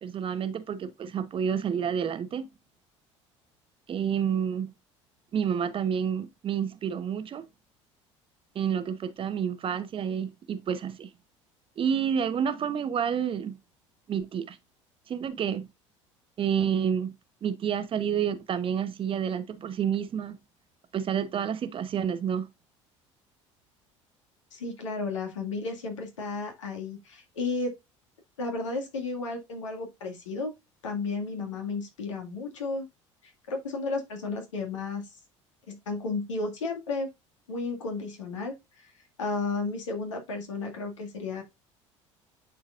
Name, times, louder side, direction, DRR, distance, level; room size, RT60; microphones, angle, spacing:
voice 1, 0.0-2.4 3.9-4.7 5.3-7.5 8.5-11.1 11.8-13.6 14.1-14.6 15.1-15.7 16.4-17.1 17.4-20.4 20.9-22.5, right 8 dB, 35° right, 1.1 m, -29 dB
voice 2, 24.5-27.7 28.4-30.5 30.8-32.9 33.2-35.1 35.7-37.1 37.5-38.6 38.8-38.9 39.2-41.4, left 3 dB, 75° left, 2.0 m, -33 dB
10.5 x 4.4 x 2.4 m
figure-of-eight pair, 65°, 16 cm